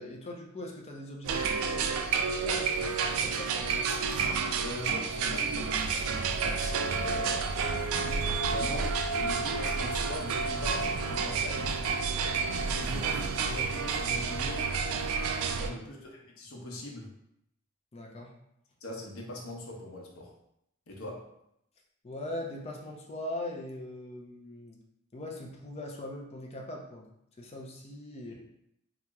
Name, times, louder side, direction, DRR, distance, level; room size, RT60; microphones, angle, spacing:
voice 1, 0.0-4.0 15.4-15.8 17.9-18.4 22.0-24.8 25.1-27.1 27.4-28.3, left 1 dB, 30° left, 0 dB, 0.4 m, -41 dB
sound 1, 1.2-15.7, right 5 dB, 85° right, 0.3 m, -30 dB
voice 2, 4.6-7.5 8.4-12.2 12.7-14.7 15.6-17.1 18.8-20.3 20.9-21.3, left 1 dB, 85° left, -1 dB, 0.7 m, -41 dB
2.9 x 2.0 x 3.4 m, 0.78 s
head